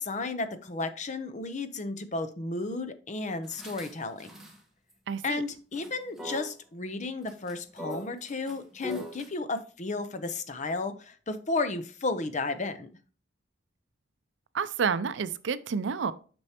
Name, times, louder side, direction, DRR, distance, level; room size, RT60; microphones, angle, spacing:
voice 1, 0.0-4.3 5.2-12.9, left 3 dB, 40° left, 0.7 m, -33 dB
sound 1, 3.4-4.6 4.9-5.0 5.5-5.9 6.2-6.5 7.3-9.3, left 1 dB, ahead, 1.3 m, -40 dB
voice 2, 5.1-5.4 14.5-16.1, right 6 dB, 65° right, 0.4 m, -29 dB
6.5 x 6.1 x 2.9 m
head